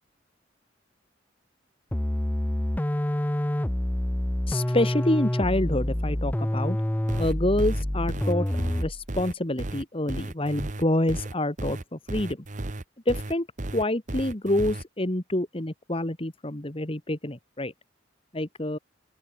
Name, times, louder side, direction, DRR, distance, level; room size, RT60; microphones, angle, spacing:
sound 1, 1.9-9.1, left 1 dB, 10° left, 0.5 m, -27 dB
voice 1, 4.5-6.8 7.2-8.5 8.8-12.4 13.1-13.5 13.7-17.7 18.3-18.8, left 1 dB, 30° left, 1.9 m, -27 dB
sound 2, 7.1-14.8, right 2 dB, 40° right, 1.1 m, -34 dB
open air
head